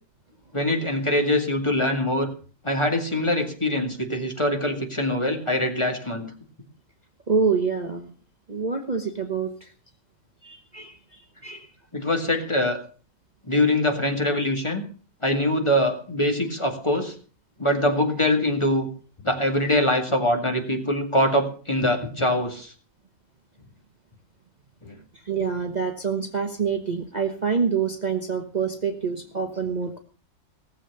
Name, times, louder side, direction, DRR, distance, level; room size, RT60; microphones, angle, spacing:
voice 1, 0.5-2.3 2.6-6.3 11.9-12.8 13.4-14.8 15.2-17.1 17.6-18.9 19.2-22.7 24.8-24.9, left 1 dB, 20° left, 4 dB, 2.2 m, -23 dB
voice 2, 7.3-8.1 8.5-9.7 10.4-11.7 25.1-30.0, right 5 dB, 30° right, 4 dB, 1.3 m, -26 dB
18.0 x 7.5 x 6.7 m, 0.40 s
omnidirectional pair, 1.5 m